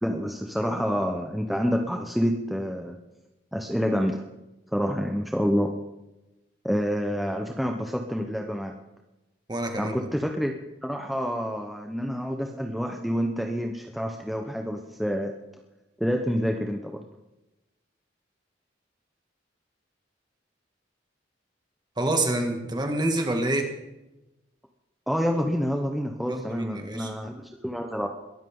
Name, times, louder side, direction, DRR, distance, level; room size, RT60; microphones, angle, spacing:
voice 1, 0.0-3.0 3.5-4.3 4.7-5.8 6.6-8.7 9.8-15.4 16.0-17.0 25.1-28.1, equal, ahead, 2 dB, 1.0 m, -28 dB
voice 2, 9.5-10.1 22.0-23.7 26.3-27.1, right 1 dB, 25° right, 3 dB, 2.3 m, -27 dB
22.5 x 13.0 x 3.9 m, 0.99 s
head